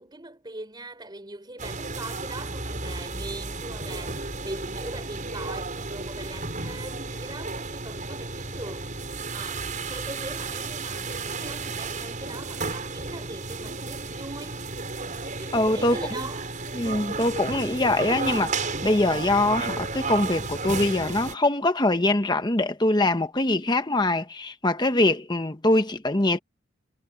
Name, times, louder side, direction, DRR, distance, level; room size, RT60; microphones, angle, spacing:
voice 1, 0.0-8.9 9.3-14.6 15.4-16.5, right 2 dB, 20° right, 3.9 m, -41 dB
sound 1, 1.6-21.3, right 3 dB, 40° right, 6.3 m, -33 dB
voice 2, 15.5-16.0 16.7-26.4, left 2 dB, 20° left, 1.0 m, -23 dB
head